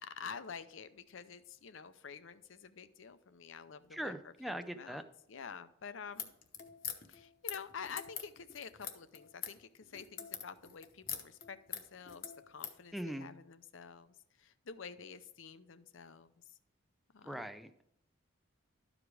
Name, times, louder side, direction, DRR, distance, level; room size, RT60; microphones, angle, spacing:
voice 1, 0.0-6.3 7.1-16.5 17.1-17.4, left 6 dB, 75° left, 13 dB, 0.6 m, -49 dB
voice 2, 3.9-5.0 12.9-13.3 17.2-17.8, equal, ahead, 8 dB, 0.4 m, -41 dB
sound 1, 6.1-12.8, left 9 dB, 45° left, 0.8 m, -44 dB
12.5 x 5.0 x 4.8 m, 0.72 s
head